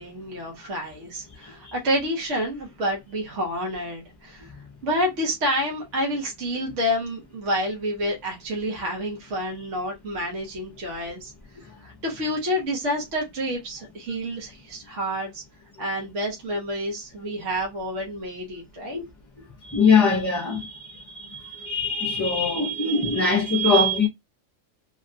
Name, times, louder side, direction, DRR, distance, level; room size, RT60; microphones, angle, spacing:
voice 1, 0.0-4.5 4.8-11.3 11.8-15.4 15.8-19.0, equal, 70° right, 1.4 m, -29 dB
voice 2, 19.6-24.1, left 3 dB, 20° left, 0.6 m, -22 dB
3.4 x 2.3 x 2.6 m
omnidirectional pair, 1.3 m